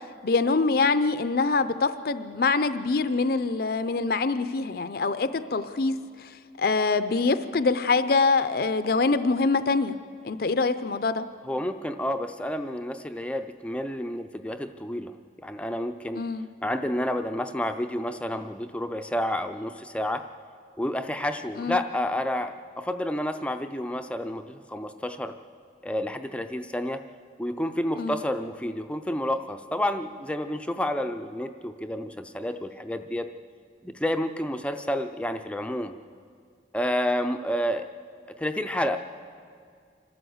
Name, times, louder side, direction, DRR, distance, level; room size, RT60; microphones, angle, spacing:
voice 1, 0.2-10.0 10.2-11.2 16.1-16.5 21.6-21.8 28.0-28.2, left 4 dB, 55° left, 12 dB, 0.6 m, -25 dB
voice 2, 11.5-15.1 15.4-16.2 16.6-20.2 20.8-25.3 25.8-27.0 27.4-33.3 33.8-35.9 36.7-37.9 38.4-39.0, left 1 dB, 5° left, 7 dB, 0.5 m, -30 dB
26.5 x 13.0 x 7.9 m, 2.2 s
head